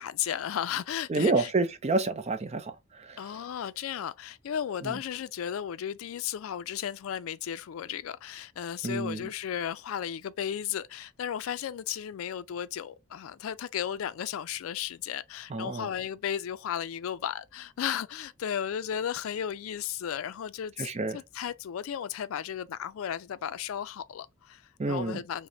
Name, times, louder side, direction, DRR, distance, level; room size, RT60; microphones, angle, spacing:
voice 1, 0.0-1.5 3.2-24.6 24.9-25.5, left 9 dB, 80° left, 0.3 m, -34 dB
voice 2, 1.1-2.7 3.0-3.2 4.8-4.9 8.8-9.3 15.5-15.9 20.8-21.2 24.8-25.2, right 3 dB, 30° right, 0.5 m, -28 dB
4.9 x 2.1 x 2.6 m
head